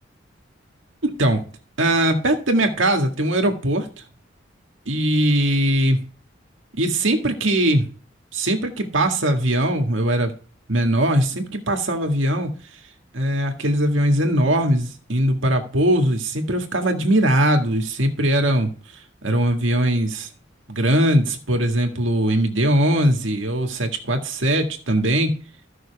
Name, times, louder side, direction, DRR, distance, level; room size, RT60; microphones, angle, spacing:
voice 1, 1.0-1.4 1.8-3.9 4.9-6.0 6.8-7.9 8.3-10.3 10.7-12.5 13.1-18.7 19.2-20.3 20.7-25.3, right 1 dB, 85° right, 4 dB, 1.9 m, -20 dB
14.5 x 6.2 x 3.5 m, 0.40 s
head